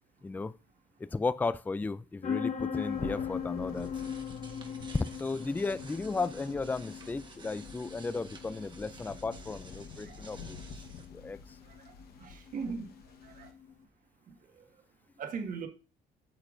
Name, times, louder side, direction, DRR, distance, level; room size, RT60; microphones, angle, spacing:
voice 1, 0.2-0.5 1.0-3.9 5.2-10.6 11.1-11.4, left 3 dB, 10° left, 0.4 m, -35 dB
sound 1, 2.2-13.7, left 7 dB, 45° left, 1.1 m, -40 dB
Thunder, 2.7-13.5, left 5 dB, 65° left, 1.3 m, -49 dB
sound 2, 3.5-11.1, right 2 dB, 25° right, 1.4 m, -52 dB
voice 2, 12.2-12.9 13.2-13.5 14.3-14.4 15.2-15.7, right 5 dB, 55° right, 1.7 m, -39 dB
8.9 x 6.8 x 2.6 m
cardioid pair, 110°, 17 cm